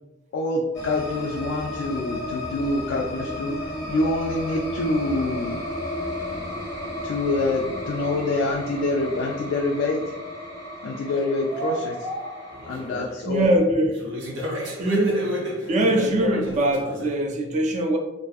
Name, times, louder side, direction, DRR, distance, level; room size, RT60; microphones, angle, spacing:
voice 1, 0.3-3.6 3.9-5.6 7.0-10.1 10.8-12.1 12.7-13.5, left 2 dB, 75° left, -1 dB, 0.3 m, -26 dB
sound 1, 0.7-12.9, left 1 dB, 20° left, 0.6 m, -33 dB
sound 2, 11.5-13.3 14.0-17.1, equal, 85° right, 0.6 m, -31 dB
voice 2, 13.3-14.0 14.8-15.3 15.7-18.0, right 1 dB, 40° right, 3 dB, 0.4 m, -22 dB
2.5 x 2.4 x 2.3 m, 0.98 s
head